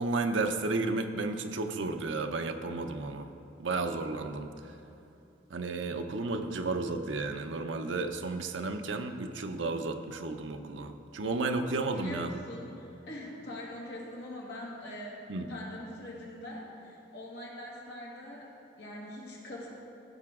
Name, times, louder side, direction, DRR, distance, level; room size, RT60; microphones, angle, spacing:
voice 1, 0.0-3.3 3.6-4.5 5.5-12.3 15.3-15.5, right 3 dB, 85° right, 6 dB, 0.6 m, -32 dB
voice 2, 11.9-19.7, left 1 dB, 60° left, -4 dB, 1.9 m, -43 dB
15.0 x 5.9 x 3.6 m, 2.8 s
head